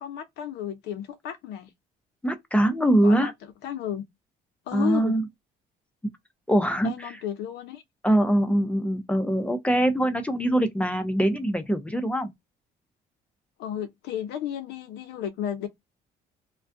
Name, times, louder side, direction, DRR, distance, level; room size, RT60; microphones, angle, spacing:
voice 1, 0.0-1.7 3.0-4.0 4.7-5.2 6.8-7.8 13.6-15.7, left 10 dB, 80° left, 0.6 m, -33 dB
voice 2, 2.2-3.3 4.7-5.2 6.5-7.1 8.0-12.3, right 1 dB, 5° left, 0.5 m, -23 dB
2.4 x 2.2 x 2.5 m
cardioid pair, 110°, 17 cm